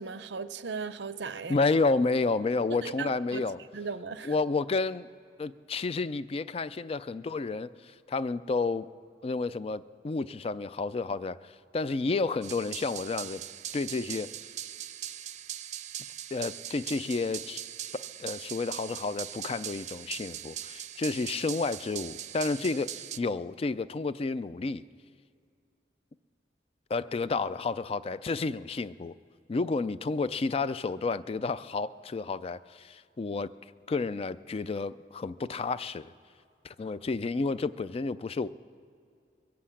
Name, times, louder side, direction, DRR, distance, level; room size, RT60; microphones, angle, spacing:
voice 1, 0.0-1.6 2.8-4.3, right 5 dB, 85° right, 13 dB, 0.6 m, -37 dB
voice 2, 1.5-3.6 4.2-5.1 5.4-8.9 9.2-13.4 13.7-14.3 16.3-17.6 17.9-24.8 26.9-29.1 29.5-33.5 33.9-36.1 36.6-38.5, left 3 dB, 35° left, 15 dB, 0.3 m, -31 dB
sound 1, 12.4-23.2, right 11 dB, 40° right, 0.4 m, -40 dB
21.5 x 7.7 x 8.5 m, 2.4 s
head